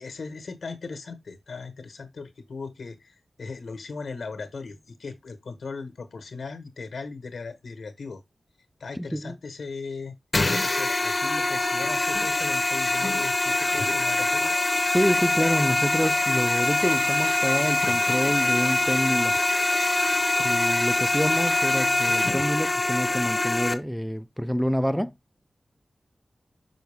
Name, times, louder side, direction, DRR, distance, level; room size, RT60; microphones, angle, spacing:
voice 1, 0.0-8.2 8.8-10.2 10.6-14.5, left 4 dB, 85° left, 1.3 m, -38 dB
voice 2, 8.9-9.4 14.9-19.4 20.4-25.1, equal, ahead, 0.4 m, -27 dB
sound 1, 10.3-23.7, left 2 dB, 35° left, 0.7 m, -24 dB
6.1 x 4.7 x 3.4 m
wide cardioid pair, 90°, 0 cm